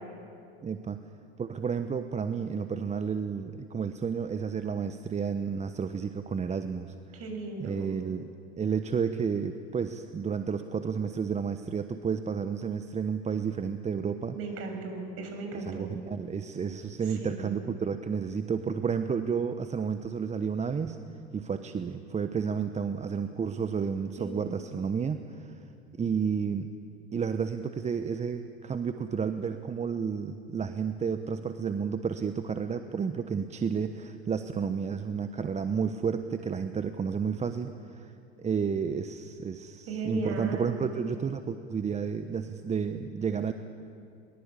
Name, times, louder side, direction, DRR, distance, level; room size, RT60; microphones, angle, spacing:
voice 1, 0.6-1.0 1.4-6.9 7.6-8.3 8.6-14.4 15.5-21.0 21.3-25.6 26.0-26.7 27.1-38.1 38.4-43.5, right 6 dB, 20° right, 9 dB, 1.1 m, -31 dB
voice 2, 7.1-7.9 14.3-15.9 17.2-17.5 22.4-22.6 24.2-24.3 39.9-40.8, right 3 dB, 45° right, 4 dB, 7.2 m, -36 dB
22.5 x 22.5 x 8.3 m, 2.5 s
hypercardioid pair, 80°, 31 cm